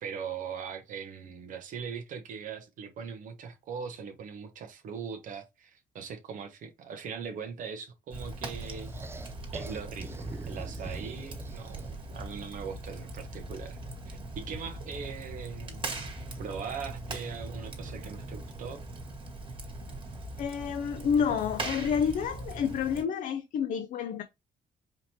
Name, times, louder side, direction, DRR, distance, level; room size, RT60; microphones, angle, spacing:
voice 1, 0.0-9.0 9.5-13.8 14.1-16.1 16.4-18.8, right 6 dB, 70° right, 1.0 m, -40 dB
Fire, 8.1-23.0, right 2 dB, 35° right, 1.9 m, -40 dB
sound 1, 8.6-12.2, right 3 dB, 15° right, 0.5 m, -43 dB
voice 2, 20.4-24.2, left 7 dB, 70° left, 0.5 m, -29 dB
5.0 x 2.9 x 2.8 m
cardioid pair, 90°, 14 cm